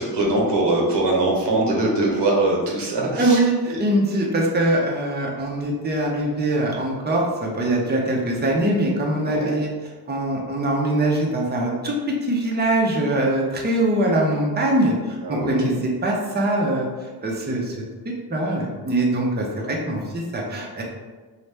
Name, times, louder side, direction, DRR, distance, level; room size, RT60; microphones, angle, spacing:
voice 1, 0.0-3.4 3.7-3.8 9.2-9.6 15.2-15.7, right 2 dB, 85° right, -2 dB, 1.0 m, -22 dB
voice 2, 3.2-9.7 10.1-20.8, right 1 dB, 25° right, -2 dB, 0.7 m, -23 dB
4.1 x 2.4 x 3.3 m, 1.4 s
wide cardioid pair, 100°, 41 cm